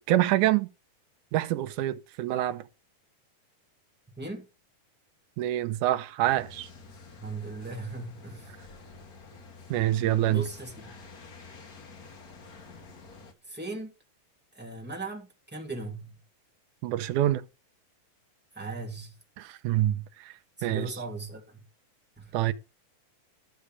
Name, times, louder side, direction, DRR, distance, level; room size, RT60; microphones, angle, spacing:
voice 1, 0.1-0.7 1.3-2.6 5.4-6.7 9.7-10.4 16.8-17.4 19.4-20.3 20.6-20.9 22.3-22.5, right 13 dB, 75° right, 2.1 m, -26 dB
voice 2, 4.2-4.5 7.2-8.5 10.3-10.9 13.5-13.9 14.5-16.2 18.5-19.1 20.6-21.6 22.2-22.3, right 3 dB, 5° right, 2.2 m, -38 dB
sound 1, 6.2-13.3, left 4 dB, 45° left, 1.2 m, -49 dB
13.5 x 6.7 x 4.8 m
omnidirectional pair, 3.9 m